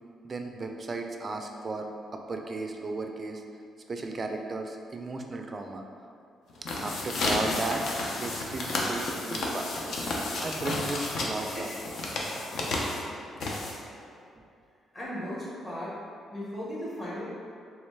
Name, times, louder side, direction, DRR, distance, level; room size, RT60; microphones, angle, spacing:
voice 1, 0.2-3.4 3.9-5.8 6.8-7.8 8.1-9.9 10.4-11.7 14.3-14.4, right 3 dB, 35° right, 4 dB, 0.3 m, -35 dB
sound 1, 6.5-14.0, left 2 dB, 65° left, 0.5 m, -32 dB
voice 2, 14.9-15.9 16.3-17.2, equal, 35° left, -8 dB, 1.4 m, -36 dB
3.2 x 3.1 x 3.2 m, 2.4 s
cardioid pair, 90°, 0 cm